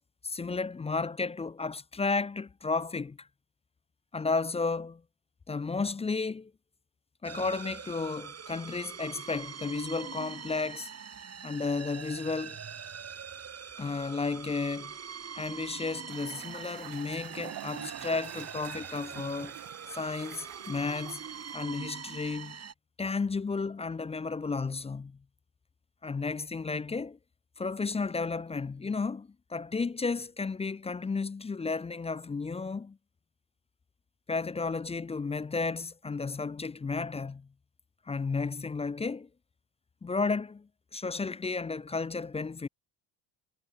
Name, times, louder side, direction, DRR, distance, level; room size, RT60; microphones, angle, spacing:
voice 1, 0.2-3.3 4.1-5.0 5.5-6.5 7.2-10.9 11.4-12.6 13.8-15.0 15.3-19.5 19.9-21.2 21.5-22.6 23.0-25.2 26.0-27.2 27.6-33.0 34.3-37.5 38.1-39.3 40.0-42.7, left 4 dB, 15° left, 0.4 m, -33 dB
sound 1, 7.2-22.7, right 7 dB, 35° right, 3.6 m, -43 dB
sound 2, 16.1-21.6, right 13 dB, 50° right, 0.9 m, -47 dB
cardioid pair, 145°, 45 cm